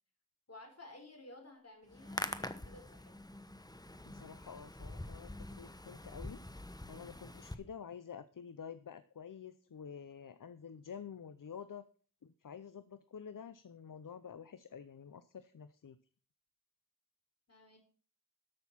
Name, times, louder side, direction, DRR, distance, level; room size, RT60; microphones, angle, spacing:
voice 1, 0.5-3.1 17.5-17.8, left 2 dB, 45° left, 3 dB, 4.0 m, -55 dB
Hands, 1.9-7.5, left 1 dB, 10° left, 1.0 m, -45 dB
voice 2, 4.1-6.4 6.9-11.8 12.2-16.0, left 7 dB, 70° left, 13 dB, 0.7 m, -49 dB
13.0 x 6.4 x 5.8 m, 0.43 s
wide cardioid pair, 50°, 34 cm